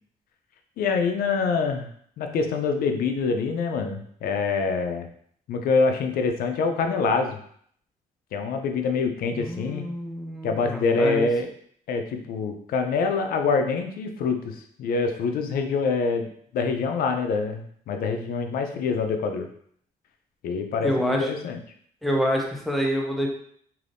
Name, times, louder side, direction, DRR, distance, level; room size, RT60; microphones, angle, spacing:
voice 1, 0.8-1.9 2.2-5.1 5.5-7.4 8.3-9.8 10.4-11.5 11.9-19.5 20.4-21.6, left 4 dB, 80° left, 5 dB, 0.5 m, -25 dB
voice 2, 9.4-11.3 20.8-21.3 22.0-23.3, equal, ahead, -1 dB, 0.5 m, -27 dB
3.3 x 2.6 x 2.5 m, 0.62 s
cardioid pair, 140°, 15 cm